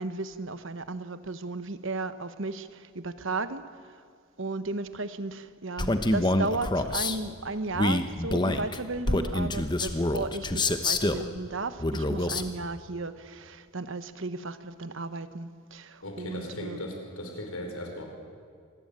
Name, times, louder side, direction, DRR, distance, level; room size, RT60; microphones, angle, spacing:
voice 1, 0.0-3.6 3.9-4.0 4.4-16.9, right 3 dB, 60° right, 12 dB, 1.1 m, -35 dB
Male speech man speaking, 5.8-7.2 7.7-11.3 11.8-12.5, left 2 dB, 20° left, 1.0 m, -26 dB
voice 2, 16.0-18.1, left 1 dB, 85° left, 3 dB, 5.3 m, -37 dB
26.0 x 20.0 x 8.9 m, 2.2 s
head